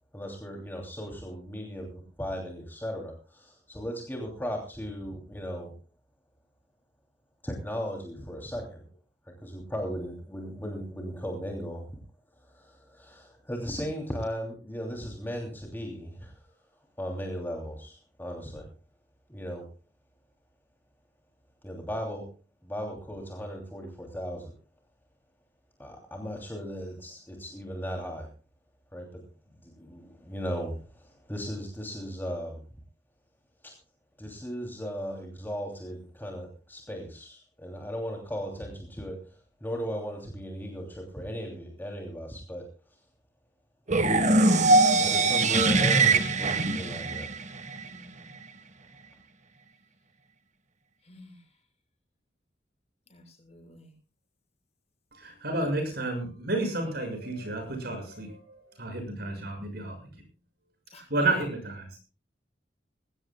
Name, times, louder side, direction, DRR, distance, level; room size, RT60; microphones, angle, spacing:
voice 1, 0.1-5.7 7.4-8.8 9.4-11.9 12.4-16.4 17.0-18.7 19.3-19.7 21.6-22.3 22.6-24.5 25.8-28.3 28.9-29.2 29.6-32.6 33.6-33.7 34.2-42.7 44.1-47.3, equal, 10° left, 1 dB, 3.0 m, -37 dB
sound 1, 43.9-47.9, right 3 dB, 40° right, 1.5 m, -22 dB
voice 2, 47.8-48.4 51.0-51.5 53.1-53.9 60.9-61.3, left 1 dB, 35° left, 2 dB, 6.9 m, -52 dB
voice 3, 55.1-60.0 60.9-62.0, right 2 dB, 60° right, 5 dB, 6.4 m, -31 dB
20.5 x 17.5 x 2.3 m, 0.35 s
head